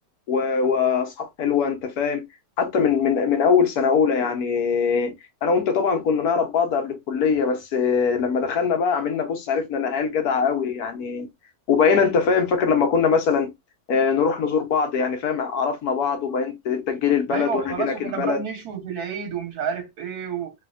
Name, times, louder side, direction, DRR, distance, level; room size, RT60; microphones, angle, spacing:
voice 1, 0.3-2.2 2.6-5.1 5.4-11.3 11.7-13.5 13.9-18.4, left 6 dB, 90° left, 1.4 m, -22 dB
voice 2, 17.3-20.5, right 7 dB, 85° right, 1.6 m, -30 dB
3.3 x 2.8 x 2.4 m
omnidirectional pair, 1.6 m